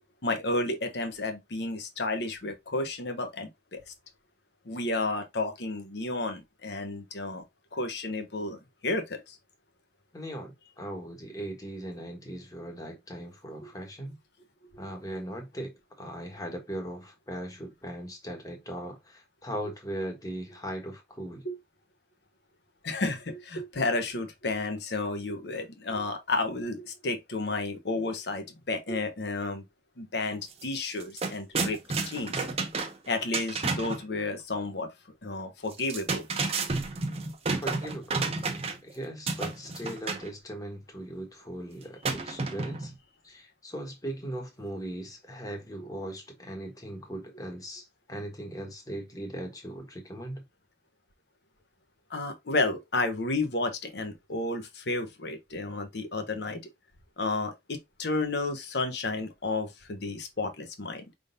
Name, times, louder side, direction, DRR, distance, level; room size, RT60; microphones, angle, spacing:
voice 1, 0.2-3.8 4.7-7.4 7.7-9.4 21.4-21.5 22.8-29.6 30.0-31.8 32.0-32.5 33.1-34.9 35.2-36.3 52.1-56.6 57.2-61.0, left 2 dB, 65° left, 1.0 m, -32 dB
voice 2, 10.1-14.1 14.8-21.4 37.6-38.3 38.8-42.9 43.2-50.4, right 1 dB, 20° left, 1.3 m, -39 dB
sound 1, 30.5-30.6 30.9-34.0 35.7-38.9 39.3-40.3 42.0-42.9, right 4 dB, 35° right, 0.8 m, -31 dB
5.1 x 3.8 x 2.6 m
head